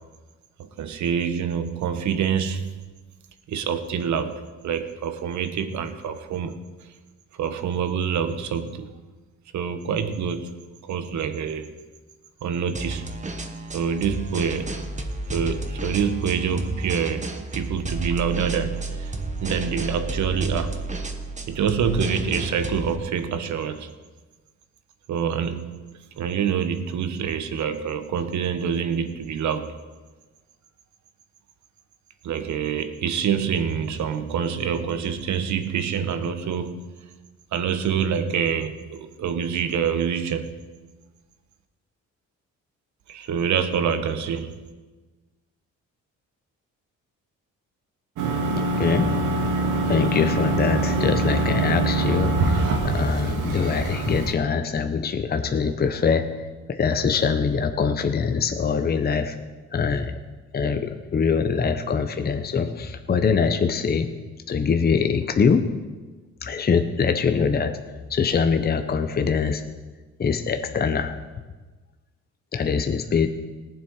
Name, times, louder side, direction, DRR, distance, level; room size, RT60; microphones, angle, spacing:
voice 1, 0.6-2.7 3.5-6.8 7.4-8.9 9.5-10.5 10.8-11.7 12.4-13.1 13.7-14.9 15.3-19.1 19.4-20.8 21.5-23.9 25.1-29.7 32.2-37.0 37.5-40.6 43.1-44.7, right 7 dB, 70° right, 9 dB, 1.2 m, -26 dB
sound 1, 12.7-23.0, right 2 dB, 25° right, 1.3 m, -31 dB
sound 2, 48.2-54.3, right 2 dB, 85° right, 2.1 m, -24 dB
voice 2, 48.6-49.5 49.9-59.4 59.7-60.2 60.5-64.1 64.5-65.7 66.4-67.8 68.1-69.7 70.2-71.2 72.5-73.3, left 5 dB, 30° left, 7 dB, 0.8 m, -23 dB
18.5 x 7.7 x 4.8 m, 1.3 s
cardioid pair, 90°, 30 cm